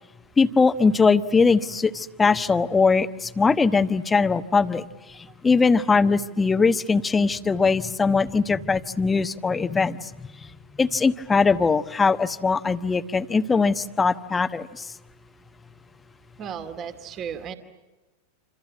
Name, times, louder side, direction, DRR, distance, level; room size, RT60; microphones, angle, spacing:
voice 1, 0.4-4.8 5.4-10.1 10.8-14.8, left 4 dB, 15° left, 12 dB, 1.1 m, -21 dB
voice 2, 5.3-5.8 16.4-17.6, right 7 dB, 30° right, 8 dB, 2.4 m, -36 dB
28.0 x 27.5 x 7.4 m, 1.2 s
figure-of-eight pair, 90°, 0 cm